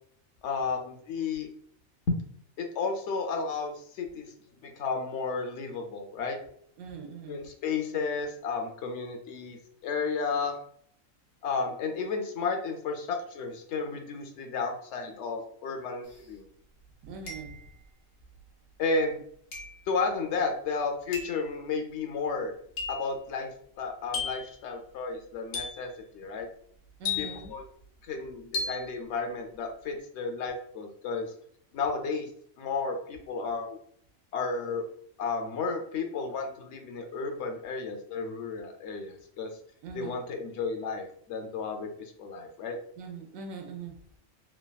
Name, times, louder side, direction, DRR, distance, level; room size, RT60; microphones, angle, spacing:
voice 1, 0.4-1.5 2.6-4.3 4.6-6.4 7.3-10.6 11.4-16.5 18.8-19.2 19.9-22.5 22.9-23.5 23.8-26.5 27.2-27.6 28.0-31.3 31.7-32.3 32.6-33.8 34.3-34.9 35.2-39.5 39.9-41.9 42.2-42.8, left 4 dB, 65° left, 4 dB, 0.7 m, -32 dB
voice 2, 6.8-7.5 17.0-17.6 27.0-27.5 39.8-40.2 43.0-43.9, right 4 dB, 70° right, 2 dB, 1.0 m, -41 dB
sound 1, 16.1-16.2 17.3-17.8 19.5-19.9 21.1-21.4 22.8-23.1 24.1-24.6 25.5-25.9 27.1-27.6 28.5-28.9, left 5 dB, 90° left, 1.2 m, -35 dB
3.4 x 2.2 x 2.2 m, 0.64 s
omnidirectional pair, 1.4 m